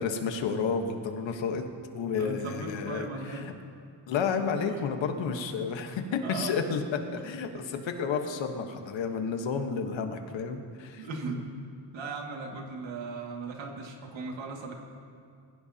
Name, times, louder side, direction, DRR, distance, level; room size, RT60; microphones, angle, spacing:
voice 1, 0.0-1.6 1.9-3.5 4.1-11.1, left 5 dB, 80° left, 5 dB, 1.4 m, -31 dB
voice 2, 2.2-3.5 6.2-6.6 11.0-11.5 11.9-14.7, right 3 dB, 80° right, 0 dB, 2.2 m, -37 dB
21.5 x 16.0 x 2.9 m, 2.4 s
wide cardioid pair, 170°, 45 cm